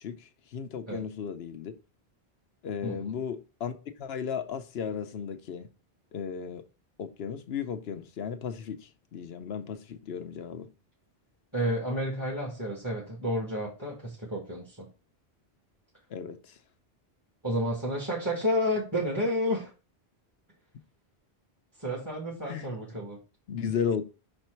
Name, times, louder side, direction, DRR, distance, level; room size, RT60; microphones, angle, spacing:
voice 1, 0.0-1.7 2.6-5.7 6.1-6.6 7.0-10.7 16.1-16.6 22.5-22.8 23.5-24.0, left 7 dB, 70° left, 1.0 m, -35 dB
voice 2, 2.8-3.1 11.5-14.9 17.4-19.7 21.8-23.2, equal, 20° right, 1.7 m, -30 dB
5.9 x 4.4 x 4.4 m
omnidirectional pair, 1.1 m